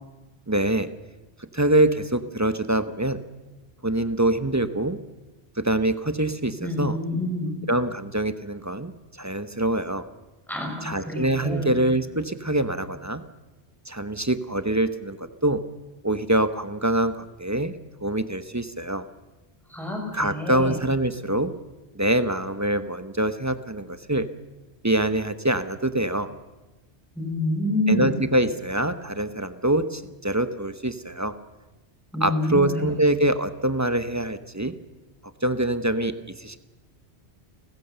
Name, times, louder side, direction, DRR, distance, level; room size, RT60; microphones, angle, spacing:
voice 1, 0.5-0.9 1.5-3.2 3.8-5.0 5.6-7.0 7.7-10.1 10.8-13.2 13.9-15.6 16.0-17.7 18.0-19.0 20.1-21.5 21.9-24.3 24.8-26.3 27.9-31.3 32.2-34.7 35.4-36.6, right 1 dB, 15° right, 11 dB, 0.8 m, -24 dB
voice 2, 6.6-7.6 10.5-11.7 19.7-20.7 27.2-28.2 32.1-32.7, left 1 dB, ahead, 1 dB, 5.3 m, -27 dB
29.5 x 14.5 x 6.8 m, 1.1 s
omnidirectional pair, 1.1 m